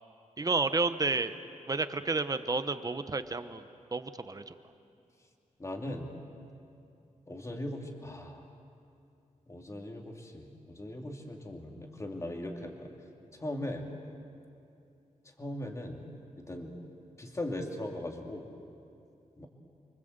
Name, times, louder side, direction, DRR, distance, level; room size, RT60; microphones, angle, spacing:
voice 1, 0.4-1.3 1.7-3.6 3.9-4.6, right 3 dB, 25° right, 11 dB, 1.0 m, -31 dB
voice 2, 5.6-6.1 7.3-8.4 9.5-12.9 13.4-13.8 15.4-16.0 16.5-16.7 17.2-18.4 19.4-19.5, left 1 dB, 20° left, 2 dB, 2.7 m, -39 dB
29.0 x 24.5 x 8.1 m, 2.5 s
wide cardioid pair, 155°, 14 cm